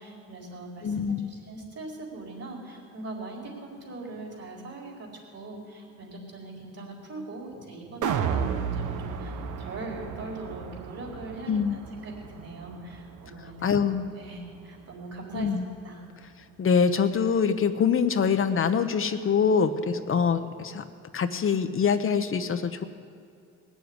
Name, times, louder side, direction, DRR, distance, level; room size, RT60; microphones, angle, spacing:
voice 1, 0.0-13.7 14.2-15.5 15.8-16.0, right 2 dB, 55° right, 0 dB, 4.6 m, -41 dB
voice 2, 0.8-1.3 11.5-11.8 13.6-14.1 15.3-15.6 16.6-20.8 21.1-22.8, left 6 dB, 45° left, 8 dB, 0.9 m, -24 dB
sound 1, 8.0-14.2 14.6-14.7, right 7 dB, 85° right, 1.0 m, -33 dB
19.5 x 7.2 x 9.5 m, 2.3 s
cardioid pair, 90°, 30 cm